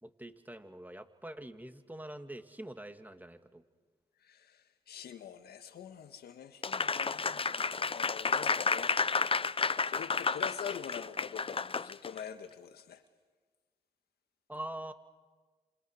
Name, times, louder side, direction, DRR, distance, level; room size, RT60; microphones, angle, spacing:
voice 1, 0.0-3.6 14.5-14.9, right 1 dB, 10° right, 2.8 m, -44 dB
voice 2, 4.2-9.0 9.6-13.0, left 8 dB, 80° left, 1.8 m, -45 dB
Applause, 6.6-12.2, left 4 dB, 35° left, 0.7 m, -31 dB
29.5 x 27.5 x 6.6 m
supercardioid pair, 50°, 16 cm